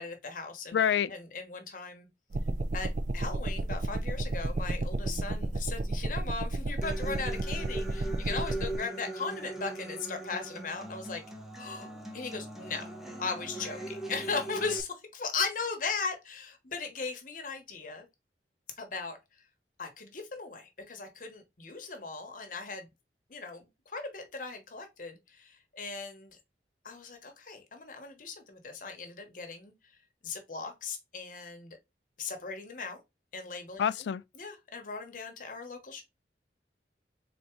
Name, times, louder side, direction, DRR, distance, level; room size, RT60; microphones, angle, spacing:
voice 1, 0.0-0.8 1.1-2.1 2.7-11.2 11.6-12.8 13.2-18.1 18.8-19.2 19.8-22.9 23.3-26.4 26.8-30.0 30.2-31.8 32.2-33.0 33.3-34.1 34.3-36.0, left 4 dB, 50° left, 1.0 m, -38 dB
voice 2, 0.7-1.1 33.8-34.2, left 8 dB, 80° left, 0.3 m, -26 dB
sound 1, 2.3-8.8, right 2 dB, 45° right, 0.4 m, -32 dB
Human voice / Acoustic guitar, 6.8-14.8, right 2 dB, ahead, 0.7 m, -40 dB
4.0 x 3.5 x 3.0 m
head